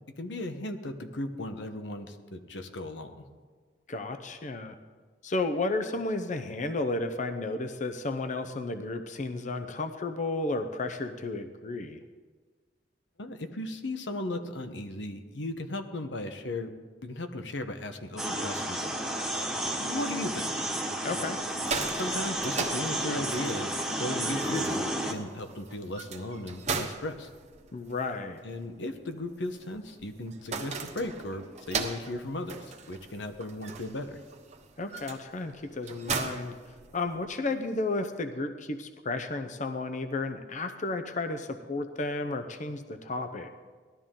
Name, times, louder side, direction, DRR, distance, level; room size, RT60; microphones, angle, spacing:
voice 1, 0.2-3.2 13.2-16.7 17.0-19.0 19.8-20.5 21.9-23.7 24.0-27.3 28.4-34.2, left 1 dB, 85° left, 7 dB, 1.1 m, -36 dB
voice 2, 3.9-4.8 5.2-12.0 21.0-21.4 27.7-28.4 34.8-36.6 36.9-43.5, left 2 dB, 45° left, 8 dB, 0.7 m, -33 dB
sound 1, 18.2-25.1, right 1 dB, ahead, 1.3 m, -32 dB
sound 2, 21.4-37.4, right 5 dB, 40° right, 1.2 m, -39 dB
18.0 x 12.5 x 3.8 m, 1.5 s
head